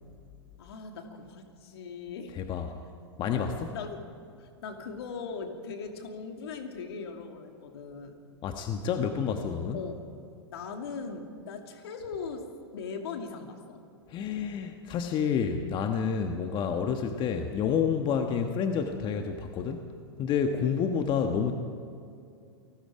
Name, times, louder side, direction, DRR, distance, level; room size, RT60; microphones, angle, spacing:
voice 1, 0.6-2.4 3.7-4.1 4.4-8.2 9.7-10.1 10.5-13.8 20.5-20.8, left 5 dB, 65° left, 4 dB, 2.7 m, -40 dB
voice 2, 2.4-2.7 3.2-3.7 8.4-9.8 14.1-19.8 20.2-21.5, left 7 dB, 35° left, 5 dB, 1.4 m, -29 dB
28.5 x 19.5 x 5.0 m, 2.5 s
hypercardioid pair, 105°, 14 cm